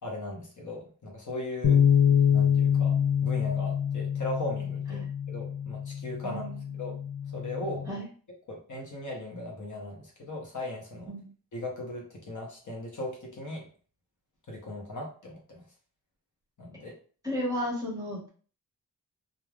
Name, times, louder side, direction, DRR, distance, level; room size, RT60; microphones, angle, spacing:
voice 1, 0.0-1.9 2.3-6.5 6.8-6.9 7.3-7.9 8.5-11.1 11.5-13.7 14.5-15.6 16.6-16.9, left 1 dB, 55° left, -1 dB, 0.9 m, -38 dB
sound 1, 1.6-7.9, left 8 dB, 35° left, 0.6 m, -26 dB
voice 2, 6.2-6.7 7.9-8.0 11.1-11.3 17.2-18.3, equal, 10° right, -4 dB, 1.3 m, -33 dB
3.2 x 2.3 x 2.3 m, 0.41 s
wide cardioid pair, 85°, 37 cm